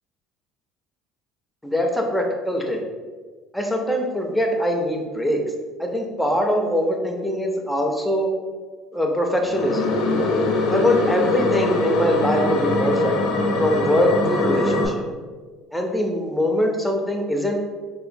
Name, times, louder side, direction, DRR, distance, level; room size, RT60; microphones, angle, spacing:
voice 1, 1.6-2.8 3.5-5.4 5.8-8.3 8.9-9.9 10.7-13.2 13.6-15.0 15.7-17.6, equal, ahead, 1 dB, 0.4 m, -22 dB
sound 1, 9.5-14.9, left 2 dB, 70° left, 0.6 m, -22 dB
3.7 x 2.5 x 2.5 m, 1.4 s
cardioid pair, 145°, 0 cm